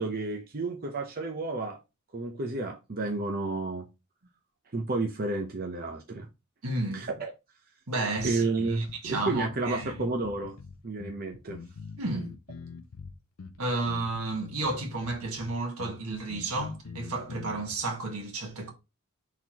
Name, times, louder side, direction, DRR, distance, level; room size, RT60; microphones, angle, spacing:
voice 1, 0.0-1.8 2.1-3.9 4.7-6.3 6.9-7.3 8.2-10.6 10.8-11.6, right 3 dB, 45° right, 0.7 m, -31 dB
voice 2, 6.6-7.1 7.9-8.4 8.8-9.9 12.0-12.3 13.6-18.7, right 2 dB, 80° right, 1.5 m, -32 dB
sound 1, 8.2-17.8, left 4 dB, 85° left, 0.5 m, -44 dB
4.4 x 3.9 x 2.9 m
head